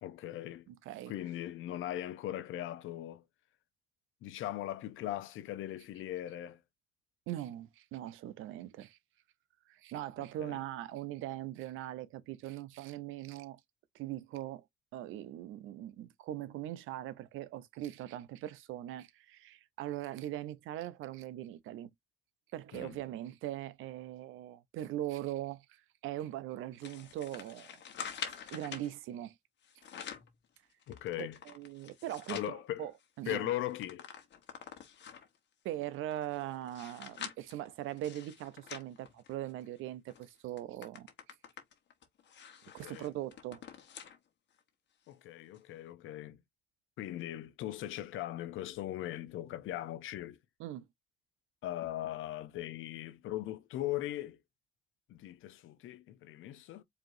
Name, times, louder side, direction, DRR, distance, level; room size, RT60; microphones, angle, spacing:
voice 1, 0.0-0.7 1.1-3.2 4.2-6.6 10.2-10.6 22.7-23.0 30.9-31.4 32.3-32.9 33.3-34.1 42.6-43.1 45.1-46.4 47.0-50.4 51.6-54.4 55.1-56.8, left 13 dB, 85° left, 0.7 m, -39 dB
voice 2, 0.7-1.1 7.3-9.0 9.7-13.6 13.9-14.6 14.9-21.9 22.5-27.8 28.2-29.3 31.2-32.9 33.2-33.5 35.6-41.1 42.7-43.6 50.6-50.9, right 13 dB, 90° right, 0.5 m, -41 dB
sound 1, 26.8-28.9 29.6-30.3 30.8-32.5 33.0-33.1 33.3-35.4 35.9-39.7 40.1-40.3 40.6-44.2 44.6-44.7 45.5-45.6, left 8 dB, 65° left, 1.1 m, -47 dB
5.0 x 2.8 x 2.6 m
cardioid pair, 90°, 20 cm